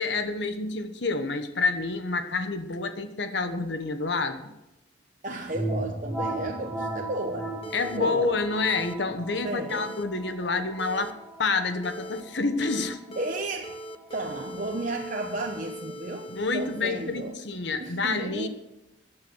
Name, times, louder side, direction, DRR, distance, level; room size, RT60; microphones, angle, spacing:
voice 1, 0.0-4.5 7.7-13.2 16.3-18.5, left 3 dB, 60° left, 9 dB, 1.2 m, -28 dB
voice 2, 5.2-7.5 7.8-8.3 9.4-9.9 13.2-13.8 14.1-17.4 17.8-18.5, right 2 dB, 45° right, 1 dB, 1.1 m, -33 dB
sound 1, 5.5-15.1, right 1 dB, 5° left, 3.9 m, -37 dB
sound 2, 7.6-8.0 8.6-8.9 9.7-10.0 10.8-11.1 11.8-12.2 12.6-13.4 13.6-17.4, right 1 dB, 30° left, 0.8 m, -41 dB
14.5 x 9.2 x 6.3 m, 0.96 s
head